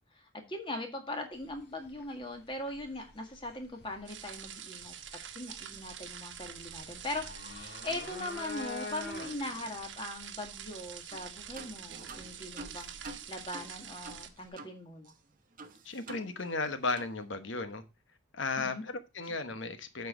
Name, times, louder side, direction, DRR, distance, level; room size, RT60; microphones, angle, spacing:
voice 1, 0.1-4.9 5.3-15.1 18.6-18.8, left 1 dB, 25° left, 1.8 m, -40 dB
sound 1, 1.3-14.5, left 3 dB, 55° left, 2.1 m, -48 dB
sound 2, 4.1-14.3, right 9 dB, 70° right, 1.1 m, -46 dB
sound 3, 11.1-11.3 11.6-14.8 15.0-15.1 15.6-16.7 17.0-17.2, right 3 dB, 45° right, 0.9 m, -48 dB
voice 2, 15.8-17.8 18.3-20.1, left 3 dB, 75° left, 1.1 m, -35 dB
8.0 x 4.7 x 6.1 m
head